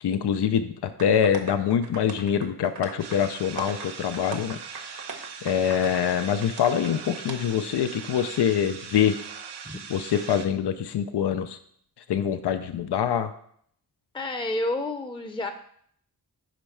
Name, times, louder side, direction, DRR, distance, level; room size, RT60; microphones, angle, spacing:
voice 1, 0.0-4.6 5.4-9.2 9.9-11.6 12.1-13.3, left 8 dB, 90° left, 10 dB, 0.5 m, -24 dB
sound 1, 1.0-6.9 7.3-7.4, right 4 dB, 65° right, 1.0 m, -40 dB
sound 2, 3.0-10.5, right 6 dB, 85° right, 0.8 m, -41 dB
voice 2, 14.1-15.5, left 2 dB, 15° left, 7 dB, 0.6 m, -29 dB
5.3 x 5.1 x 5.7 m, 0.65 s
cardioid pair, 60°, 39 cm